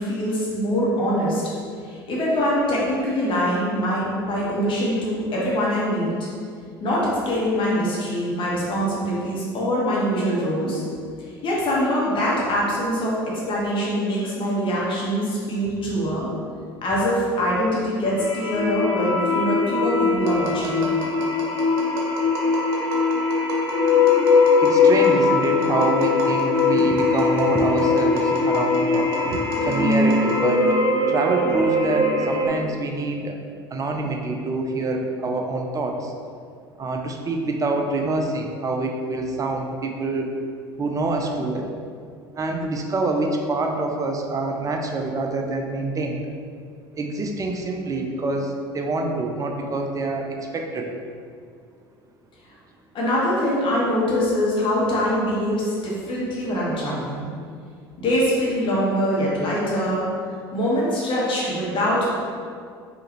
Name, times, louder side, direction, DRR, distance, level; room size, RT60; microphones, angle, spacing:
voice 1, 0.0-1.4 1.8-6.1 6.8-10.8 11.4-16.3 16.8-20.9 52.9-57.3 58.0-60.1 60.5-62.1, equal, 40° left, -6 dB, 1.5 m, -23 dB
sound 1, 18.2-32.5, left 4 dB, 5° left, 1.3 m, -21 dB
Tap, 20.2-30.7, right 2 dB, 60° right, 0.9 m, -32 dB
voice 2, 24.6-30.7 31.1-33.4 33.7-36.1 36.8-40.3 40.8-41.7 42.4-46.2 46.9-51.0, right 2 dB, 25° right, 3 dB, 0.6 m, -26 dB
4.8 x 3.0 x 3.0 m, 2.2 s
figure-of-eight pair, 65°, 13 cm